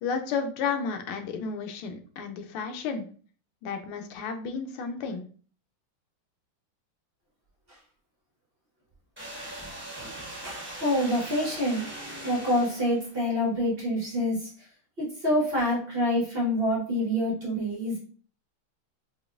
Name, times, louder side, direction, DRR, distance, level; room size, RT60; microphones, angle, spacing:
voice 1, 0.0-3.1 3.6-5.3, left 5 dB, 90° left, 6 dB, 1.5 m, -32 dB
sound 1, 9.2-13.2, right 1 dB, 15° right, 0.4 m, -40 dB
voice 2, 10.2-11.8 12.2-14.5 15.0-18.0, left 1 dB, 45° right, -5 dB, 0.8 m, -27 dB
4.9 x 2.4 x 2.4 m, 0.42 s
omnidirectional pair, 2.3 m